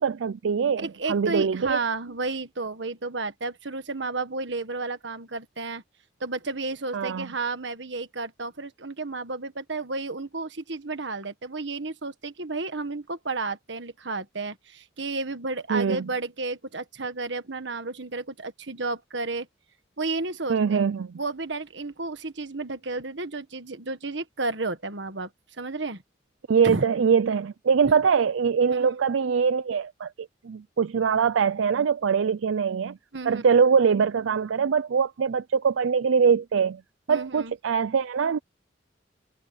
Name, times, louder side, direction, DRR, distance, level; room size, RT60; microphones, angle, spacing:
voice 1, 0.0-1.8 6.9-7.3 15.7-16.1 20.5-21.1 26.5-33.0 33.3-36.8 37.1-38.4, right 6 dB, 90° right, 0.5 m, -23 dB
voice 2, 0.8-5.8 6.2-19.5 20.0-20.8 21.1-25.3 25.6-26.0 26.6-26.8 28.7-28.9 33.1-33.4 37.1-37.5, right 3 dB, 70° right, 1.6 m, -32 dB
head